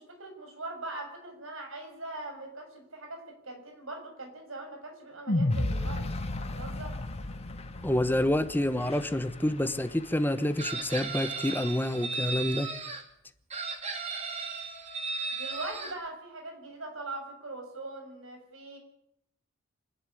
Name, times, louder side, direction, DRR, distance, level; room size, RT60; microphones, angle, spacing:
voice 1, 0.0-6.1 6.4-7.0 15.3-18.8, right 2 dB, 70° right, 3 dB, 6.3 m, -41 dB
sound 1, 5.3-9.6, left 1 dB, 50° left, 1.1 m, -32 dB
Traffic noise roadway noise, 5.5-12.1, left 4 dB, 30° left, 2.4 m, -49 dB
voice 2, 7.8-12.7, left 1 dB, 10° left, 12 dB, 1.0 m, -28 dB
Chicken rooster, 10.6-13.0 13.5-15.9, right 4 dB, 30° right, 2.8 m, -35 dB
26.0 x 11.0 x 9.9 m, 0.76 s
head